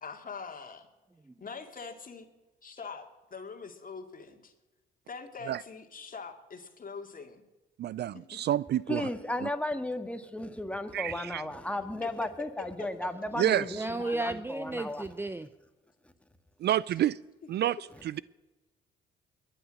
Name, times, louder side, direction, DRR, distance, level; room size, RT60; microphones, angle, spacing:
voice 1, 0.0-0.9 1.4-2.3 2.6-4.5 5.1-7.4 8.1-8.4 12.0-12.1 12.8-12.9 13.4-13.5 14.0-14.2, left 5 dB, 45° left, 2.2 m, -43 dB
voice 2, 7.8-9.1 9.4-9.5 10.9-11.4 13.4-13.8 16.6-17.2 17.5-18.2, right 12 dB, 55° right, 0.4 m, -29 dB
voice 3, 8.9-15.1, left 1 dB, 5° left, 1.7 m, -35 dB
voice 4, 13.7-15.5, right 2 dB, 10° right, 0.6 m, -33 dB
22.0 x 9.1 x 6.3 m
supercardioid pair, 65°, 20 cm